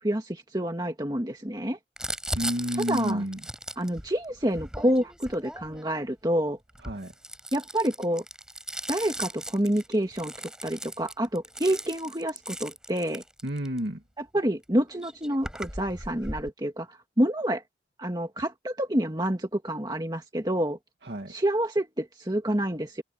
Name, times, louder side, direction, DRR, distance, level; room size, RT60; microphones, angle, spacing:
voice 1, 0.0-1.8 2.8-3.2 3.8-6.6 7.5-8.2 8.9-10.3 10.6-13.2 14.2-17.6 18.0-20.8 21.3-23.0, right 1 dB, 25° right, 1.8 m, -28 dB
Crumpling crinkling, 2.0-6.0 6.7-13.8 14.6-14.7 14.9-16.5, right 1 dB, 5° right, 6.7 m, -38 dB
voice 2, 2.3-3.4 6.9-7.1 13.4-14.0 21.0-21.3, equal, 75° right, 2.1 m, -30 dB
head